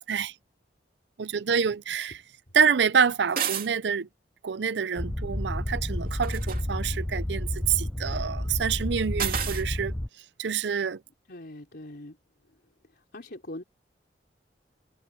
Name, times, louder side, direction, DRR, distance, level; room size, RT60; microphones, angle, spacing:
voice 1, 1.2-2.2 2.5-4.1 4.4-9.9 10.4-11.0, right 6 dB, 75° right, 0.5 m, -27 dB
sound 1, 3.3-3.7 6.1-6.6 9.2-9.6, right 8 dB, 55° right, 3.0 m, -30 dB
sound 2, 5.0-10.1, left 1 dB, 10° left, 0.4 m, -31 dB
voice 2, 11.3-12.2 12.9-13.6, left 1 dB, 65° left, 4.2 m, -42 dB
head